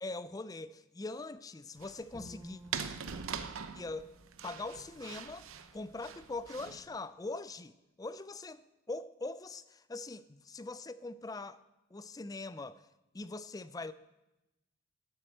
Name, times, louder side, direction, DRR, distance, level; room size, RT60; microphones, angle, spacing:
voice 1, 0.0-2.6 3.7-4.1 4.4-11.6 11.9-12.8 13.1-13.9, left 3 dB, 15° left, 0.3 m, -42 dB
sound 1, 1.8-6.8, right 6 dB, 80° right, 0.7 m, -43 dB
Bowed string instrument, 2.1-5.3, right 1 dB, ahead, 1.8 m, -54 dB
12.5 x 7.6 x 6.4 m
head